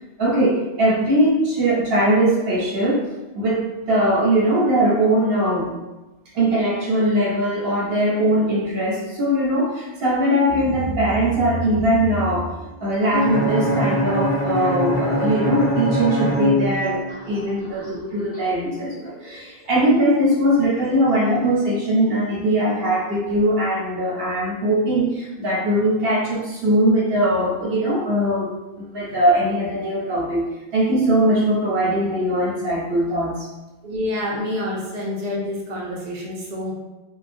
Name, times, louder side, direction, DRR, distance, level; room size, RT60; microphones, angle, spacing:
voice 1, 0.2-3.1 3.3-5.7 6.3-12.5 12.8-30.4 30.7-33.5, right 1 dB, 70° right, -4 dB, 1.0 m, -20 dB
sound 1, 10.5-23.2, equal, 50° left, 1.0 m, -36 dB
Bowed string instrument, 13.1-17.2, equal, 25° left, 0.5 m, -22 dB
voice 2, 33.8-36.7, left 1 dB, 45° right, -4 dB, 0.7 m, -27 dB
3.8 x 2.2 x 2.5 m, 1.1 s
omnidirectional pair, 1.0 m